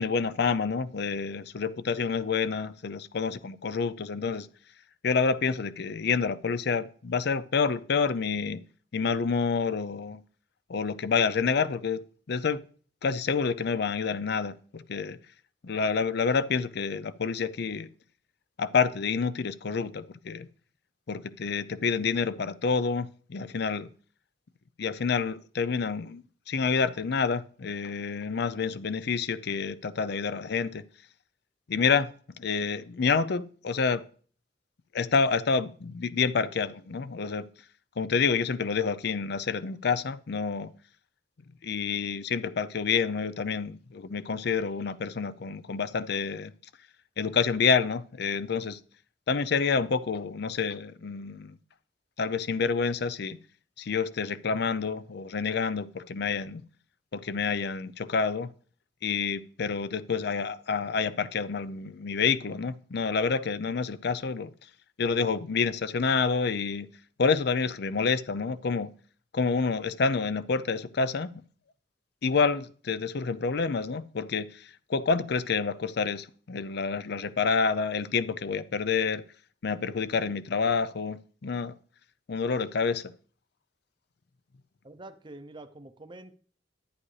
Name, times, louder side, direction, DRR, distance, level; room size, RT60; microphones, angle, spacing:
voice 1, 0.0-4.5 5.0-8.6 8.9-10.2 10.7-12.6 13.0-15.2 15.6-17.9 18.6-20.5 21.1-23.9 24.8-26.2 26.5-30.8 31.7-32.1 32.4-34.0 34.9-37.4 38.0-40.7 41.6-46.5 47.2-48.8 49.3-51.6 52.2-53.4 53.8-56.6 57.1-58.5 59.0-64.5 65.0-66.9 67.2-68.9 69.3-71.4 72.2-79.2 79.6-81.7 82.3-83.1, left 5 dB, 60° left, 0.5 m, -28 dB
voice 2, 84.8-86.4, right 2 dB, 25° right, 0.6 m, -46 dB
11.0 x 9.7 x 3.3 m
head